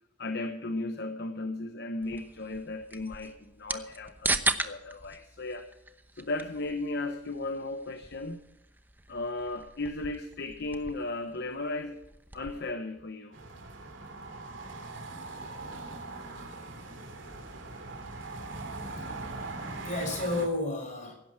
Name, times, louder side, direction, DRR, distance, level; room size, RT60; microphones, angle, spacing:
voice 1, 0.2-5.7 6.2-8.4 9.1-12.0 12.3-13.4, left 2 dB, 60° left, 8 dB, 1.0 m, -35 dB
sound 1, 2.0-12.7, right 3 dB, 10° right, 0.9 m, -38 dB
sound 2, 13.3-20.5, right 2 dB, 75° right, 3.1 m, -41 dB
voice 2, 19.0-21.1, left 2 dB, 40° left, 2 dB, 5.8 m, -33 dB
16.5 x 11.5 x 4.6 m, 0.90 s
head